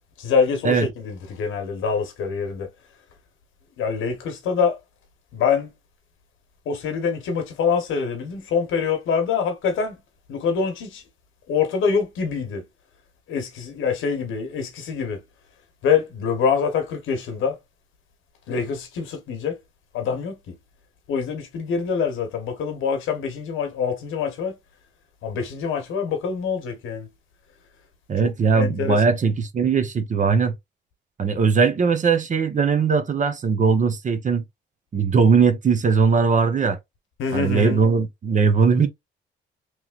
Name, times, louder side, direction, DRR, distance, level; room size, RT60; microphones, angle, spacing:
voice 1, 0.2-2.7 3.8-4.8 5.3-5.7 6.7-10.0 10.3-11.0 11.5-12.6 13.3-15.2 15.8-17.6 18.5-19.5 19.9-20.4 21.1-24.5 25.2-27.1 28.5-29.1 37.2-37.8, left 6 dB, 80° left, 1.1 m, -25 dB
voice 2, 28.1-30.5 31.2-34.4 34.9-36.8 37.3-38.9, right 5 dB, 40° right, 0.8 m, -19 dB
3.2 x 3.0 x 2.4 m
cardioid pair, 90°, 20 cm